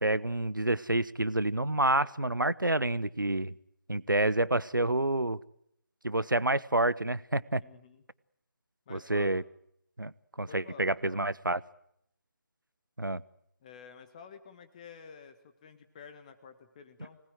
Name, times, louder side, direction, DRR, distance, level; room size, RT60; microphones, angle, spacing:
voice 1, 0.0-3.5 3.9-5.4 6.0-7.6 8.9-9.4 10.0-10.1 10.4-11.6 13.0-13.2, right 2 dB, 80° right, 20 dB, 1.0 m, -28 dB
voice 2, 7.6-8.0 8.9-9.3 10.5-11.2 13.6-17.2, left 6 dB, 20° left, 9 dB, 1.6 m, -50 dB
25.0 x 19.5 x 9.4 m, 0.74 s
figure-of-eight pair, 155°, 11 cm